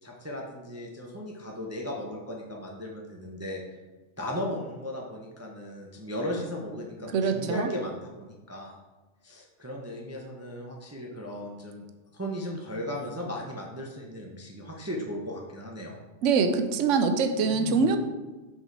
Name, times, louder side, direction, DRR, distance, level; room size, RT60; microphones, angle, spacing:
voice 1, 0.0-3.8 4.2-8.7 9.2-11.9 12.1-16.0 17.4-17.9, equal, 15° right, -1 dB, 0.6 m, -36 dB
voice 2, 7.1-7.7 16.2-18.0, right 5 dB, 70° right, 8 dB, 1.0 m, -24 dB
6.5 x 4.8 x 4.6 m, 1.2 s
omnidirectional pair, 1.3 m